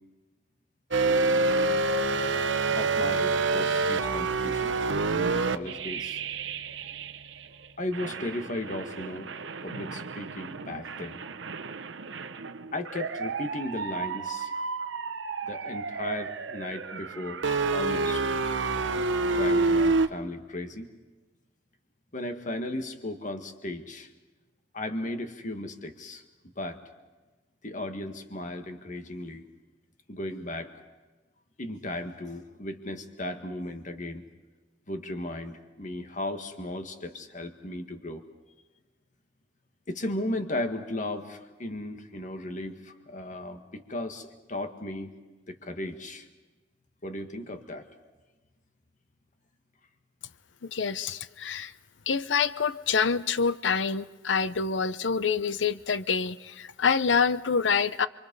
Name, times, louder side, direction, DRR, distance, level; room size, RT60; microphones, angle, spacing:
sound 1, 0.9-7.5 7.9-20.1, right 3 dB, 80° right, 0.9 m, -28 dB
voice 1, 2.7-4.8 5.1-6.2 7.8-9.3 9.6-11.2 12.7-14.5 15.4-17.4 17.7-18.2 19.2-20.9 22.1-24.1 24.7-26.2 26.5-26.8 27.6-29.5 30.1-30.7 31.6-34.2 34.9-38.2 39.9-45.1 45.5-46.3 47.0-47.9, left 1 dB, 40° left, 6 dB, 1.7 m, -36 dB
voice 2, 50.6-51.7 52.1-58.1, left 5 dB, 75° left, 15 dB, 0.7 m, -26 dB
28.0 x 23.5 x 5.4 m, 1.3 s
head